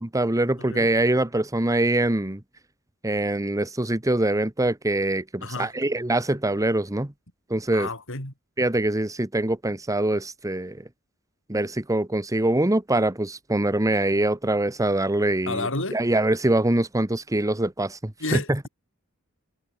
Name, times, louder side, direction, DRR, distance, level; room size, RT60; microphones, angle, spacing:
voice 1, 0.0-2.4 3.0-7.1 7.5-7.9 8.6-10.8 11.5-18.7, right 1 dB, 15° right, 1.2 m, -24 dB
voice 2, 0.6-0.9 5.4-5.7 7.7-8.3 15.5-16.0 18.2-18.7, left 3 dB, 65° left, 7.9 m, -31 dB
head